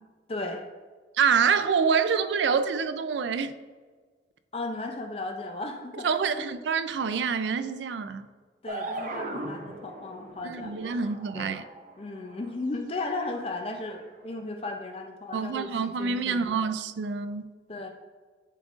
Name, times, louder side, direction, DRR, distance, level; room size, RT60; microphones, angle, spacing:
voice 1, 0.3-0.7 4.5-6.5 8.6-11.7 12.0-16.7 17.7-17.9, left 2 dB, 35° left, 0.5 m, -36 dB
voice 2, 1.1-3.5 6.0-8.3 10.4-11.6 15.3-17.5, right 6 dB, 85° right, 0.4 m, -26 dB
sound 1, 8.7-12.5 13.2-13.4 14.2-14.3, right 2 dB, 45° right, 0.6 m, -38 dB
11.0 x 3.6 x 2.5 m
head